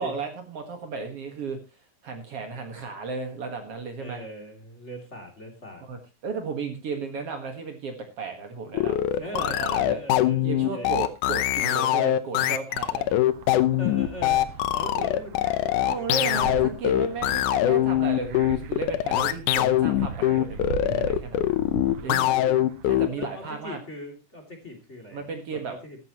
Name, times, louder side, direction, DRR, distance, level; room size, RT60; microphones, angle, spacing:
voice 1, 0.0-1.6 2.0-4.2 5.9-9.0 9.3-10.0 10.4-13.1 15.0-15.1 15.8-21.5 22.0-22.3 22.9-23.8 25.1-25.8, right 4 dB, 55° right, 5 dB, 2.4 m, -34 dB
voice 2, 4.0-5.8 9.2-10.4 10.7-10.9 13.8-14.4 14.7-16.5 22.3-22.6 23.2-25.2 25.5-26.0, left 1 dB, 25° left, 4 dB, 2.8 m, -40 dB
sound 1, 8.7-23.3, left 13 dB, 90° left, 2.4 m, -23 dB
sound 2, 13.3-22.8, right 7 dB, 70° right, 2.1 m, -40 dB
14.0 x 13.0 x 3.0 m, 0.27 s
omnidirectional pair, 3.5 m